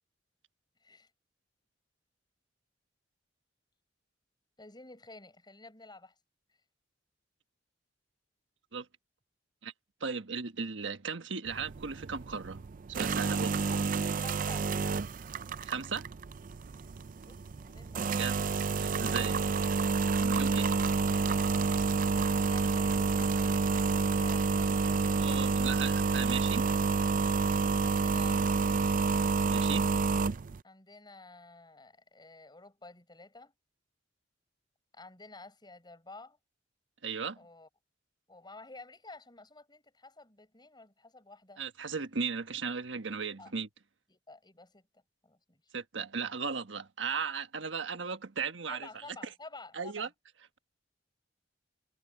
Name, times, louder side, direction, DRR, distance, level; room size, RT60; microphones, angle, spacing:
voice 1, 4.6-6.1 14.2-14.7 17.3-18.2 22.1-25.6 27.8-29.2 30.6-33.5 34.9-36.4 37.4-37.7 38.3-41.6 43.4-43.5 44.1-45.6 48.7-50.1, left 2 dB, 25° left, 7.1 m, -52 dB
voice 2, 10.0-13.6 15.6-16.1 18.1-18.3 18.8-19.5 20.2-20.7 25.2-26.7 29.5-29.9 37.0-37.4 41.6-43.7 45.7-48.9 49.7-50.1, right 5 dB, 75° right, 1.4 m, -36 dB
sound 1, 11.5-30.6, right 4 dB, 45° right, 0.5 m, -29 dB
head